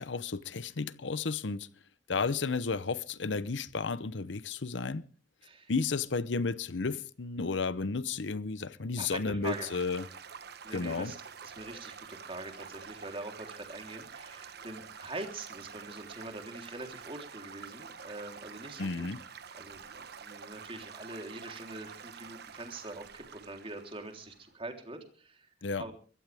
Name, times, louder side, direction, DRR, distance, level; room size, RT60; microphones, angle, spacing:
voice 1, 0.0-1.7 2.1-5.0 5.7-10.1 10.7-11.1 18.8-19.2 25.6-25.9, left 4 dB, 80° left, 0.8 m, -33 dB
voice 2, 9.0-9.7 10.6-11.2 11.4-19.1 19.6-25.5 25.8-25.9, right 2 dB, 30° right, 3.6 m, -43 dB
Stream / Gurgling / Trickle dribble, 9.4-24.5, right 6 dB, 60° right, 1.2 m, -48 dB
23.5 x 16.0 x 3.5 m
head